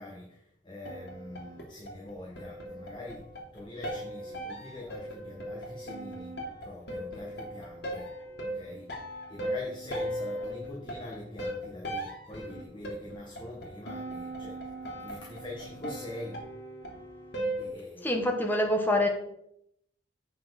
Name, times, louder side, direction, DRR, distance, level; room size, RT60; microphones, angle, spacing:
voice 1, 0.0-3.3 3.5-6.3 6.6-8.1 8.5-16.4 17.6-18.2, left 1 dB, 25° left, -3 dB, 1.7 m, -44 dB
sound 1, 0.8-17.7, equal, 65° left, 2.8 m, -38 dB
voice 2, 18.0-19.1, left 1 dB, 10° left, 2 dB, 1.3 m, -25 dB
8.3 x 5.8 x 5.9 m, 0.75 s
head